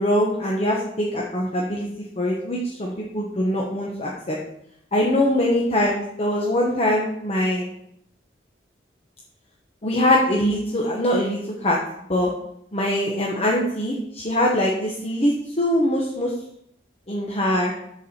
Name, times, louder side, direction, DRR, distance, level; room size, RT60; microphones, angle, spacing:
voice 1, 0.0-1.9 2.2-4.4 4.9-7.7 9.8-11.8 12.1-12.3 12.7-16.3 17.1-17.7, left 1 dB, 35° left, -2 dB, 1.2 m, -22 dB
12.5 x 4.8 x 4.4 m, 0.76 s
head